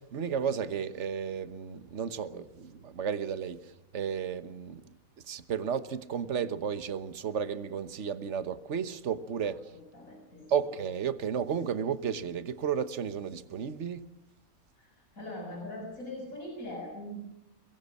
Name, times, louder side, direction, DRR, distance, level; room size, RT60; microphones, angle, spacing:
voice 1, 0.0-4.8 5.3-9.6 10.5-14.0, right 7 dB, 55° right, 1.4 m, -33 dB
voice 2, 9.7-10.4 14.8-17.2, left 1 dB, 70° left, 7.1 m, -41 dB
24.0 x 21.5 x 7.2 m
omnidirectional pair, 1.5 m